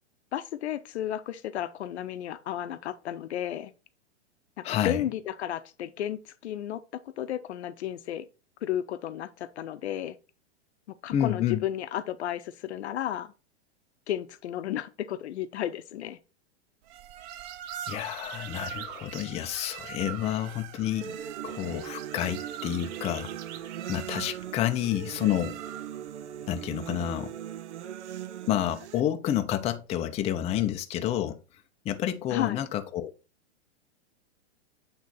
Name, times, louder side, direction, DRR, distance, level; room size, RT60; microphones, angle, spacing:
voice 1, 0.3-3.7 4.7-6.8 7.2-8.3 8.6-10.2 11.0-13.3 14.1-16.2 32.3-32.6, left 11 dB, 75° left, 0.7 m, -33 dB
voice 2, 4.6-5.0 11.1-11.6 17.9-21.2 21.4-23.3 23.9-25.6 26.5-27.3 28.5-31.4 31.8-33.1, left 11 dB, 20° left, 0.5 m, -29 dB
sound 1, 16.9-26.1, right 10 dB, 40° right, 0.5 m, -42 dB
sound 2, 21.0-29.0, right 10 dB, 90° right, 0.5 m, -40 dB
7.9 x 3.2 x 4.0 m
hypercardioid pair, 115°, 34 cm